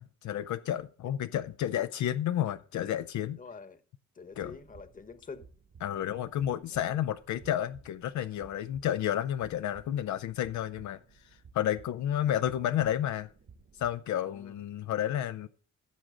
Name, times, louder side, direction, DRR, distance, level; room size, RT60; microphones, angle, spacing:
voice 1, 0.0-3.4 4.4-4.5 5.8-11.0 11.5-13.3 13.8-15.5, left 11 dB, 70° left, 0.6 m, -31 dB
voice 2, 3.4-3.8 4.1-5.5 6.7-7.0 14.2-14.6, left 5 dB, 25° left, 1.1 m, -47 dB
sound 1, 4.3-13.9, right 5 dB, 50° right, 1.7 m, -57 dB
15.0 x 6.1 x 3.8 m
cardioid pair, 90°, 30 cm